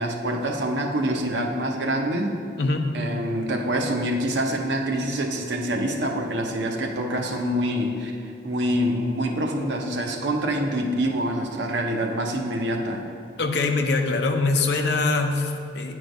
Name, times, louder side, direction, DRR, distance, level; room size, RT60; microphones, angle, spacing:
voice 1, 0.0-2.4 2.9-8.1 8.4-13.1, right 1 dB, 80° right, 2 dB, 0.7 m, -26 dB
voice 2, 2.6-2.9 13.4-15.9, left 3 dB, 65° left, 4 dB, 0.6 m, -23 dB
9.0 x 3.2 x 5.2 m, 2.4 s
head